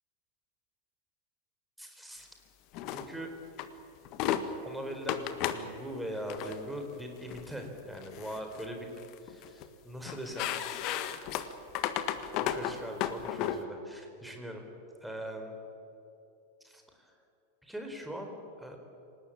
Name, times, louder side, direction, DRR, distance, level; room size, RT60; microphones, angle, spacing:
voice 1, 1.8-2.3 2.9-3.3 4.6-8.9 9.2-10.6 12.3-14.7 15.0-15.5 16.6-17.1 17.6-18.8, equal, 5° right, 3 dB, 4.1 m, -41 dB
sound 1, 2.7-3.1 3.6-3.7 4.0-4.4 5.1-5.6 6.2-6.5 7.3-7.5 8.0-8.7 9.0-9.6 10.0-13.6, left 11 dB, 40° left, 1.6 m, -33 dB
27.5 x 18.5 x 8.8 m, 2.7 s
figure-of-eight pair, 90°, 0 cm